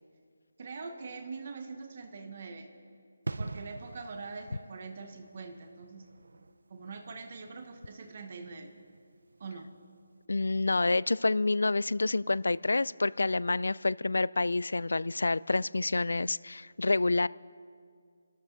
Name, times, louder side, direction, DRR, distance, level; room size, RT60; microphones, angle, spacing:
voice 1, 0.6-2.7 3.4-6.1 6.7-8.7 9.4-9.7, right 4 dB, 30° right, 5 dB, 1.0 m, -43 dB
sound 1, 3.2-9.7 10.0-10.2, right 3 dB, 70° right, 0.5 m, -44 dB
voice 2, 10.3-17.3, left 3 dB, 85° left, 21 dB, 0.3 m, -28 dB
28.0 x 13.0 x 3.9 m, 2.2 s
hypercardioid pair, 180°, 0 cm